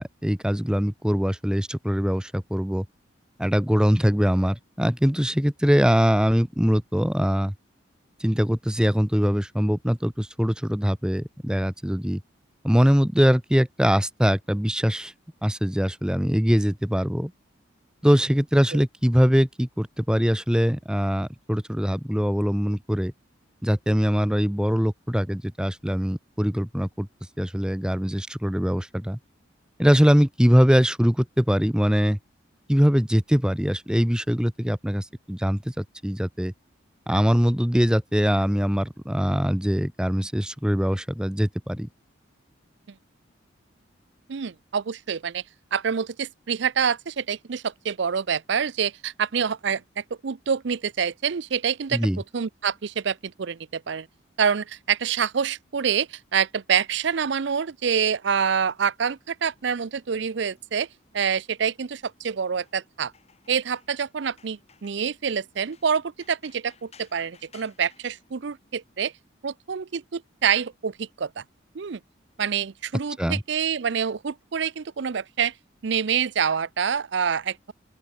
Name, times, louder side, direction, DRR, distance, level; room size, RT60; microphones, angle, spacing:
voice 1, 0.0-2.8 3.4-7.5 8.2-12.2 12.6-15.1 15.4-17.3 18.0-23.1 23.6-27.1 27.4-29.2 29.8-32.2 32.7-36.5 37.1-41.9 51.9-52.2 73.2-73.4, equal, 5° right, 0.9 m, -22 dB
voice 2, 44.3-45.4 45.7-52.0 52.3-54.1 54.4-60.9 61.1-63.1 63.5-69.1 69.4-71.4 71.7-72.0 72.4-75.5 75.8-77.7, right 7 dB, 65° right, 0.5 m, -26 dB
sound 1, 59.0-69.0, left 5 dB, 30° left, 7.9 m, -60 dB
open air
head